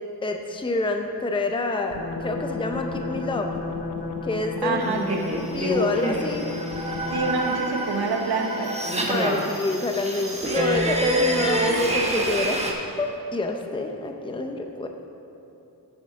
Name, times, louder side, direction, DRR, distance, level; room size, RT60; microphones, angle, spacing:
voice 1, 0.2-3.5 4.2-4.9 5.5-6.5 9.1-12.6 13.0-14.9, left 2 dB, 15° left, 4 dB, 0.6 m, -27 dB
sound 1, 1.9-7.7, left 4 dB, 85° left, 0.9 m, -33 dB
voice 2, 4.6-5.2 7.1-8.7, right 4 dB, 70° right, 3 dB, 1.1 m, -27 dB
sound 2, 4.8-12.7, right 1 dB, 15° right, 1.1 m, -26 dB
sound 3, 6.7-12.4, equal, 35° right, 1.7 m, -38 dB
8.0 x 6.5 x 6.4 m, 2.9 s
wide cardioid pair, 90°, 40 cm